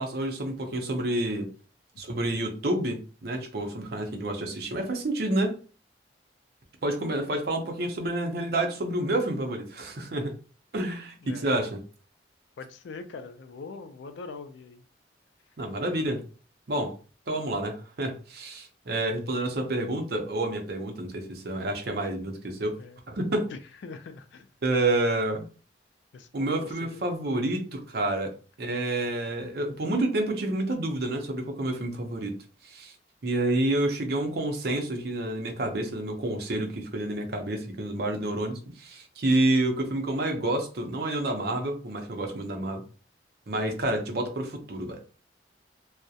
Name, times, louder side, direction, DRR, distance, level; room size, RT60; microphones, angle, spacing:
voice 1, 0.0-1.5 2.0-5.6 6.8-10.3 10.7-11.8 15.6-16.2 16.7-17.0 17.3-22.7 23.1-23.5 24.6-25.4 26.3-28.3 28.6-32.4 32.6-32.9 33.2-42.8 43.5-45.0, right 1 dB, 55° right, 0.5 m, -29 dB
voice 2, 7.0-7.4 11.2-11.5 12.6-14.8 22.8-23.0 23.5-24.8 26.1-27.0, left 4 dB, 75° left, 0.4 m, -43 dB
2.3 x 2.0 x 2.7 m
head